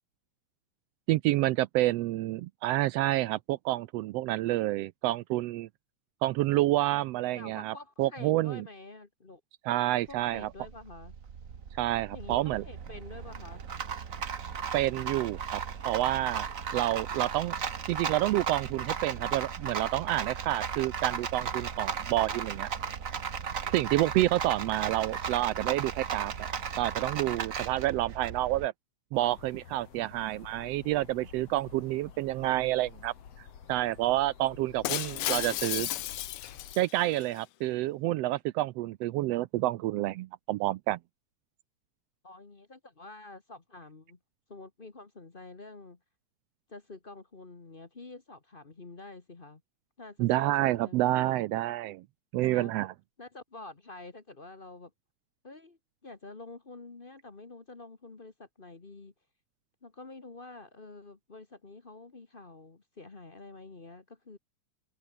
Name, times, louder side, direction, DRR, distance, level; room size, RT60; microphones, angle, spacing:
voice 1, 1.1-5.7 6.2-8.6 9.6-10.5 11.8-12.6 14.7-16.5 16.7-17.6 17.9-22.7 23.6-26.5 26.8-28.7 29.1-33.1 33.7-35.9 36.8-41.0 50.2-52.0 52.3-52.9, right 16 dB, 90° right, 1.4 m, -29 dB
voice 2, 7.3-9.4 10.1-11.1 12.1-13.6 42.2-44.2 44.5-46.0 46.7-49.6 50.0-51.2 52.4-52.8 53.2-54.9 55.4-59.1 59.8-64.4, left 3 dB, 35° left, 0.9 m, -48 dB
Rattle, 10.1-28.7, right 6 dB, 45° right, 1.1 m, -36 dB
sound 1, 29.1-36.8, left 7 dB, 55° left, 3.3 m, -51 dB
Shatter, 34.8-37.2, left 15 dB, 85° left, 1.2 m, -33 dB
omnidirectional pair, 3.5 m